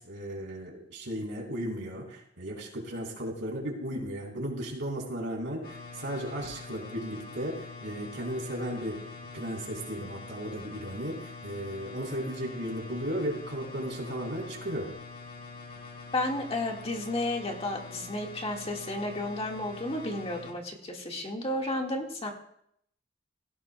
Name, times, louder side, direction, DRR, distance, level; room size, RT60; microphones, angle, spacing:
voice 1, 0.0-9.0 9.3-14.9, equal, 65° right, 0 dB, 3.7 m, -35 dB
sound 1, 5.6-20.5, left 4 dB, 50° left, 1.9 m, -45 dB
voice 2, 16.1-22.3, left 1 dB, 30° left, 1 dB, 1.7 m, -32 dB
17.5 x 16.0 x 2.2 m, 0.71 s
head